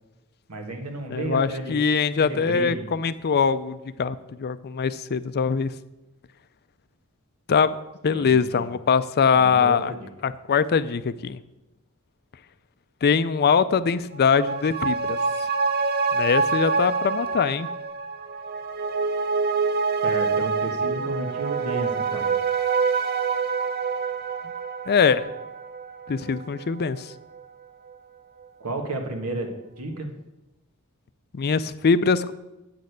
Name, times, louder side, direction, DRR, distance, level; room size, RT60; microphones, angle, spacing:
voice 1, 0.5-1.8 2.2-2.8 8.1-8.7 9.3-10.1 20.0-22.3 28.6-29.5 29.8-30.1, right 2 dB, 80° right, 4 dB, 1.7 m, -32 dB
voice 2, 1.1-5.7 7.5-7.8 8.0-9.9 10.2-11.4 13.0-15.2 16.1-17.7 24.9-25.3 26.1-27.1 31.3-32.3, left 6 dB, 45° left, 14 dB, 0.4 m, -22 dB
sound 1, 14.1-27.0 27.3-27.4, right 5 dB, 45° right, 0.7 m, -26 dB
8.5 x 6.5 x 8.1 m, 0.99 s
head